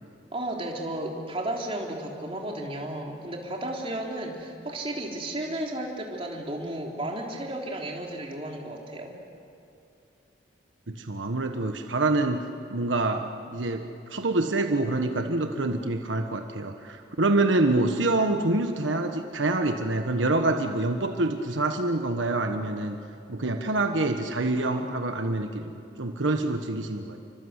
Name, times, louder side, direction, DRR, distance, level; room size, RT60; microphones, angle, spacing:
voice 1, 0.3-9.1, right 1 dB, 30° right, -1 dB, 3.5 m, -33 dB
voice 2, 10.9-12.4 12.7-23.0 23.3-25.7 26.0-27.2, right 2 dB, 90° right, 5 dB, 1.4 m, -26 dB
28.5 x 24.5 x 8.2 m, 2.5 s
head